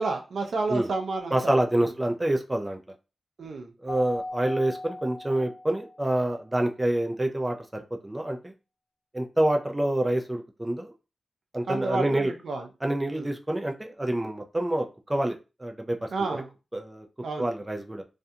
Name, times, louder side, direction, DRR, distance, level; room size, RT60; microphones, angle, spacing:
voice 1, 0.0-1.9 3.4-3.7 11.7-12.7 13.1-13.3 16.1-16.5 17.2-17.5, right 3 dB, 75° right, 3 dB, 0.5 m, -31 dB
voice 2, 1.3-2.8 3.8-8.5 9.1-10.9 11.5-12.3 12.8-16.1 16.7-17.1 17.4-18.0, right 1 dB, 15° right, 3 dB, 0.4 m, -27 dB
Keyboard (musical), 3.9-6.1, left 2 dB, 40° left, 0.8 m, -38 dB
2.4 x 2.2 x 2.7 m, 0.30 s
cardioid pair, 70°, 0 cm